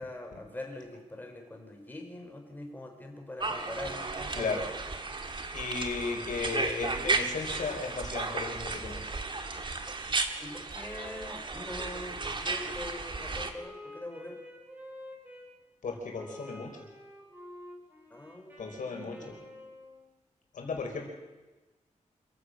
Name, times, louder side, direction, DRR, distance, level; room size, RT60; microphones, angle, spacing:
voice 1, 0.0-4.5 10.4-14.4 18.1-19.5, left 1 dB, 15° left, 2 dB, 4.0 m, -43 dB
sound 1, 3.4-13.5, right 3 dB, 40° right, 1.7 m, -34 dB
voice 2, 4.3-4.7 5.5-9.1 15.8-16.9 18.6-19.4 20.5-21.1, left 4 dB, 85° left, 2 dB, 5.0 m, -35 dB
Wind instrument woodwind instrument, 10.8-15.5 16.1-20.1, left 1 dB, 15° right, 5.2 m, -49 dB
27.0 x 15.5 x 6.5 m, 1.2 s
wide cardioid pair, 150°, 13 cm